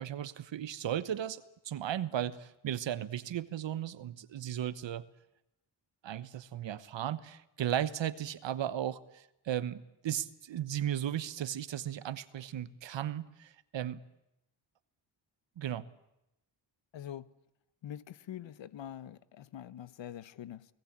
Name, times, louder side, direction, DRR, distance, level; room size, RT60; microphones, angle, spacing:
voice 1, 0.0-5.0 6.0-14.0 15.6-15.8, right 10 dB, 80° right, 1.2 m, -36 dB
voice 2, 16.9-17.3 17.8-20.7, left 10 dB, 80° left, 1.1 m, -44 dB
29.5 x 19.0 x 8.8 m
wide cardioid pair, 155°, 44 cm